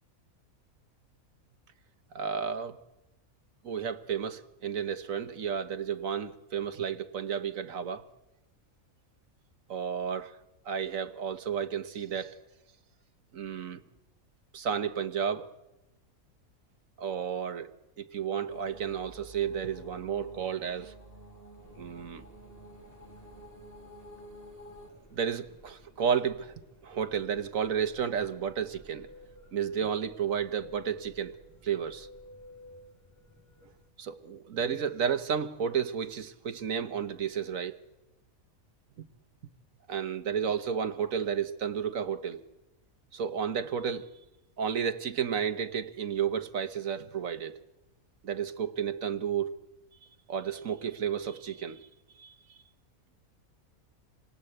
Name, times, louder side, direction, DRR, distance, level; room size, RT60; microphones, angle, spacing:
voice 1, 2.1-2.8 3.6-8.1 9.7-10.4 10.6-12.4 13.3-13.8 14.5-15.5 17.0-17.7 18.0-20.9 21.8-22.2 25.1-26.5 26.8-29.1 29.5-31.3 31.6-32.1 34.0-37.8 39.0-39.1 39.9-42.4 43.1-44.1 44.6-47.6 48.2-49.6 50.3-51.9 52.2-52.3, right 7 dB, 70° right, 1.6 m, -32 dB
sound 1, 18.5-24.9, right 1 dB, 40° right, 3.4 m, -50 dB
sound 2, 21.6-33.9, equal, 10° left, 4.6 m, -55 dB
27.5 x 22.0 x 8.0 m
omnidirectional pair, 1.5 m